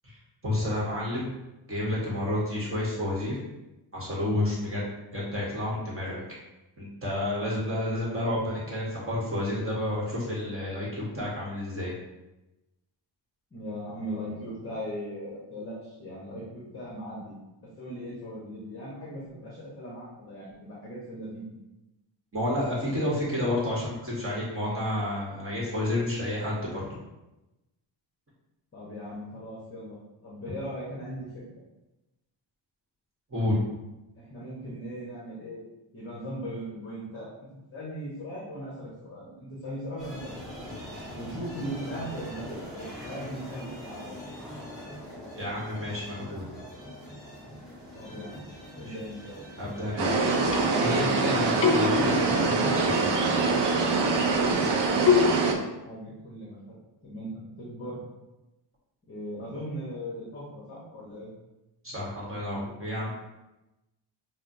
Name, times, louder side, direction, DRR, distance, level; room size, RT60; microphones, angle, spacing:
voice 1, 0.0-1.3 1.7-3.4 3.9-4.8 5.1-6.2 6.8-11.9 22.3-26.8 33.3-33.6 45.3-46.5 48.8-48.9 49.6-53.2 61.8-63.1, left 1 dB, 30° right, -6 dB, 1.0 m, -30 dB
voice 2, 13.5-17.3 17.6-21.5 28.7-30.0 30.2-31.3 34.1-35.6 35.9-40.7 41.1-44.2 47.9-49.5 55.4-56.7 57.0-58.0 59.1-61.3, equal, 30° left, -6 dB, 0.9 m, -39 dB
sound 1, 40.0-55.3, equal, ahead, 1.2 m, -43 dB
sound 2, 50.0-55.5, right 4 dB, 65° right, 0.6 m, -24 dB
sound 3, 50.1-51.2 51.6-52.8 55.1-55.4, left 6 dB, 65° left, 0.5 m, -26 dB
6.0 x 2.0 x 2.6 m, 1.0 s
wide cardioid pair, 145°, 46 cm